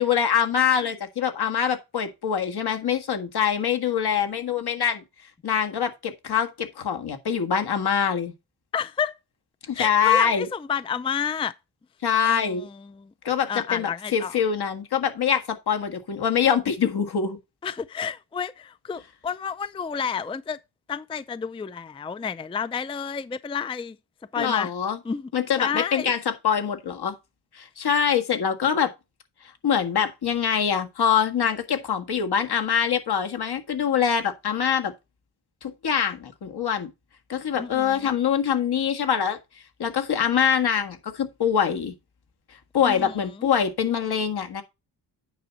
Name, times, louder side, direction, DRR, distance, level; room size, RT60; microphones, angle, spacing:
voice 1, 0.0-5.0 5.4-8.3 9.7-10.5 12.0-12.7 13.2-17.4 24.4-25.0 25.3-27.2 27.5-28.9 29.6-34.9 35.6-36.9 37.3-39.4 39.8-41.9 42.7-44.6, left 8 dB, 65° left, 1.8 m, -24 dB
voice 2, 8.7-9.2 9.7-11.5 12.3-13.1 13.5-14.4 17.6-20.6 20.9-24.0 24.3-24.7 25.0-25.3 25.6-26.1 37.5-38.2 42.8-43.5, left 7 dB, 15° left, 0.4 m, -30 dB
9.2 x 6.0 x 4.1 m
wide cardioid pair, 105°, 41 cm